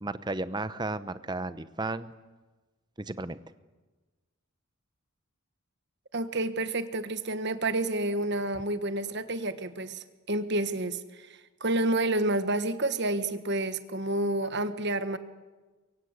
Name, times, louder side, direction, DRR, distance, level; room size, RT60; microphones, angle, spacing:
voice 1, 0.0-2.1 3.0-3.4, right 2 dB, 20° right, 14 dB, 0.8 m, -34 dB
voice 2, 6.1-15.2, right 2 dB, 50° right, 11 dB, 1.4 m, -29 dB
24.0 x 23.5 x 8.3 m, 1.2 s
head